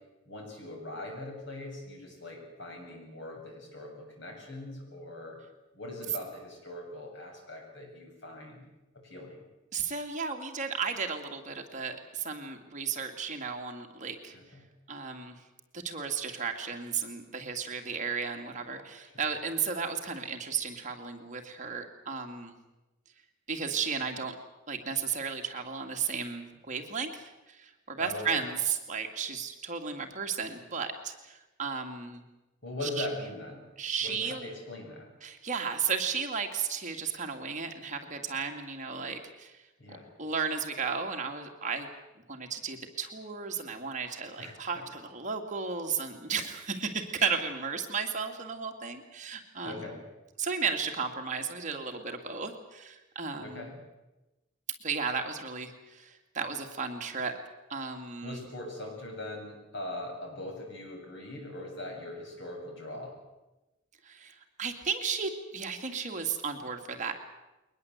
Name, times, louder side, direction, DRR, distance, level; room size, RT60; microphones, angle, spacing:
voice 1, 0.3-5.4 5.7-8.7 8.9-9.4 14.3-14.6 28.0-28.5 32.6-33.6 34.0-35.1 39.8-40.1 44.4-44.8 49.6-50.0 53.4-53.7 58.2-63.2, left 1 dB, 65° left, 1 dB, 7.7 m, -41 dB
voice 2, 9.7-14.3 14.9-15.4 15.7-22.5 23.5-24.3 24.7-32.2 32.8-33.1 33.8-34.5 35.2-39.6 40.2-41.9 42.3-50.0 50.4-53.7 54.8-57.3 57.7-58.4 64.0-67.1, right 5 dB, 40° right, 4 dB, 2.4 m, -34 dB
22.0 x 20.0 x 8.2 m, 1.0 s
head